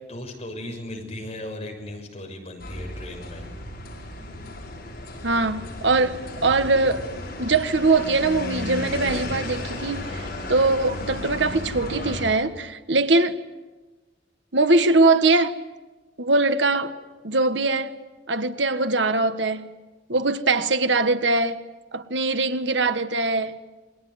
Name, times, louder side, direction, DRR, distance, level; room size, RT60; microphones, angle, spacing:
voice 1, 0.1-3.5, left 1 dB, 35° left, 6.6 m, -36 dB
sound 1, 2.6-12.2, left 1 dB, 55° left, 6.9 m, -34 dB
voice 2, 5.2-7.1 7.4-13.4 14.5-15.6 16.2-16.9 17.2-18.0 18.3-19.8 20.1-21.6 21.9-23.6, right 3 dB, 85° right, 1.5 m, -22 dB
28.0 x 22.0 x 9.5 m
head